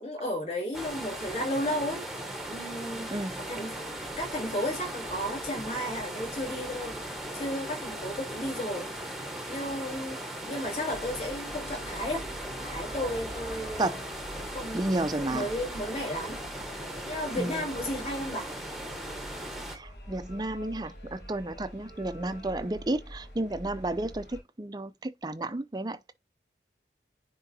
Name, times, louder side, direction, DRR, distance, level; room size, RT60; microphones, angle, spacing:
voice 1, 0.0-3.2 3.5-3.9 4.2-7.0 7.3-8.9 9.5-10.2 10.5-12.3 12.6-13.9 14.3-14.8 15.2-16.4 17.0-18.5, left 1 dB, 35° left, 2.6 m, -33 dB
sound 1, 0.7-19.8, right 1 dB, ahead, 1.1 m, -38 dB
sound 2, 10.9-24.4, equal, 65° left, 3.2 m, -45 dB
voice 2, 14.7-15.5 17.4-17.7 19.7-26.1, right 2 dB, 20° right, 0.4 m, -32 dB
9.8 x 3.6 x 2.7 m
head